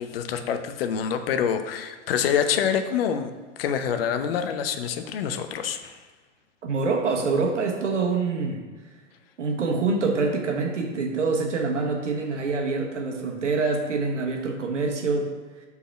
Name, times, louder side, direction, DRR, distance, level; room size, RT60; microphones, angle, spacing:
voice 1, 0.0-3.3 3.6-5.9, left 8 dB, 50° left, 8 dB, 0.7 m, -26 dB
voice 2, 6.6-8.6 9.4-15.3, right 4 dB, 70° right, 2 dB, 1.2 m, -25 dB
5.0 x 4.1 x 5.6 m, 1.4 s
figure-of-eight pair, 100°, 37 cm